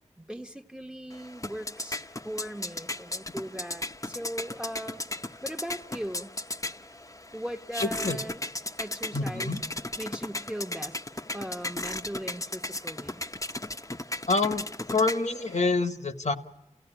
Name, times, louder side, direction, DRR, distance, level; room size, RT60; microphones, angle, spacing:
voice 1, 0.2-5.0 5.4-6.3 7.3-8.4 8.8-9.6 10.0-11.0 11.3-13.2, equal, 5° right, 7 dB, 1.0 m, -38 dB
sound 1, 1.1-15.6, left 2 dB, 25° left, 0.8 m, -36 dB
voice 2, 7.8-8.2 9.1-9.6 14.3-14.6 14.9-16.3, left 3 dB, 65° left, 7 dB, 1.2 m, -26 dB
29.0 x 16.0 x 10.0 m, 0.93 s
wide cardioid pair, 65°, 13 cm